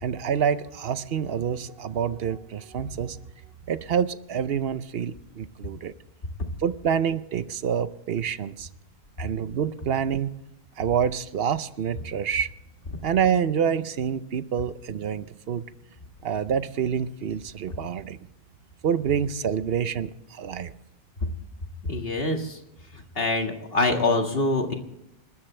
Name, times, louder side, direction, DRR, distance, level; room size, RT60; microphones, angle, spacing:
voice 1, 0.0-3.2 3.7-5.9 6.6-8.7 9.2-10.3 10.8-12.5 13.0-15.6 16.2-18.2 18.8-20.7, right 8 dB, 70° right, 14 dB, 0.9 m, -27 dB
voice 2, 21.9-22.6 23.2-24.7, left 2 dB, 65° left, 3 dB, 2.1 m, -24 dB
29.0 x 13.0 x 3.3 m, 0.89 s
omnidirectional pair, 1.0 m